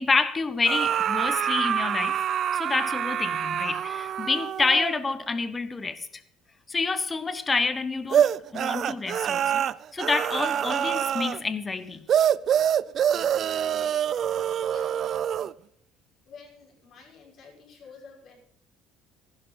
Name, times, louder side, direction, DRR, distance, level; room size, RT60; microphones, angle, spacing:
voice 1, 0.0-2.2 2.5-6.1 6.7-8.3 8.5-9.6 9.9-12.0, left 4 dB, 20° left, 1.2 m, -28 dB
sound 1, 0.6-5.1 8.1-11.4 12.1-15.5, right 9 dB, 40° right, 0.4 m, -26 dB
voice 2, 13.7-15.2 16.3-18.4, left 5 dB, 45° left, 5.6 m, -50 dB
15.5 x 12.0 x 4.0 m
cardioid pair, 150°, 0 cm